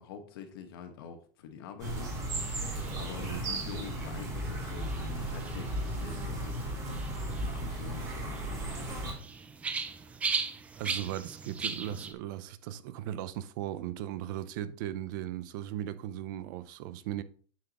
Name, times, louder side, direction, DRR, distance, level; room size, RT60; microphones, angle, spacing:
voice 1, 0.0-2.6 2.9-7.0 7.4-9.0, left 7 dB, 80° left, 1.4 m, -46 dB
sound 1, 1.8-9.1, right 1 dB, 30° right, 2.6 m, -35 dB
sound 2, 1.9-12.1, right 5 dB, 10° right, 0.4 m, -40 dB
voice 2, 10.8-17.2, right 12 dB, 60° right, 0.6 m, -37 dB
8.8 x 6.0 x 3.0 m
supercardioid pair, 175°, 12 cm